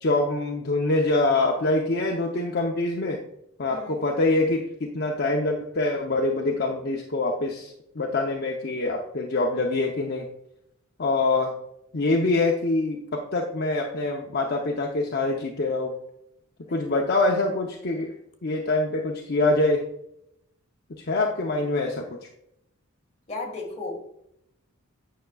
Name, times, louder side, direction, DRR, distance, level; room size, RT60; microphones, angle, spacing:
voice 1, 0.0-3.2 3.6-10.3 11.0-11.5 11.9-15.9 16.7-18.1 18.4-19.8 21.0-22.0, left 2 dB, 50° left, 0 dB, 0.7 m, -25 dB
voice 2, 3.7-4.0 16.6-16.8 23.3-24.0, left 3 dB, 30° left, 0 dB, 1.5 m, -35 dB
9.2 x 6.0 x 2.3 m, 0.78 s
head